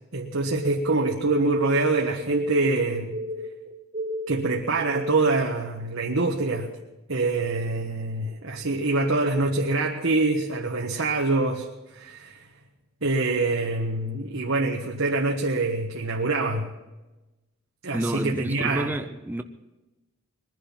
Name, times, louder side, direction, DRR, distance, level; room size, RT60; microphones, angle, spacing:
voice 1, 0.1-3.1 4.3-6.7 7.1-11.7 11.9-12.4 13.0-16.7 17.8-18.9, right 3 dB, 65° right, 1.4 m, -25 dB
sound 1, 0.6-5.4, right 1 dB, 30° right, 0.9 m, -34 dB
voice 2, 17.9-19.4, right 1 dB, 10° right, 0.6 m, -29 dB
21.5 x 11.0 x 5.8 m
head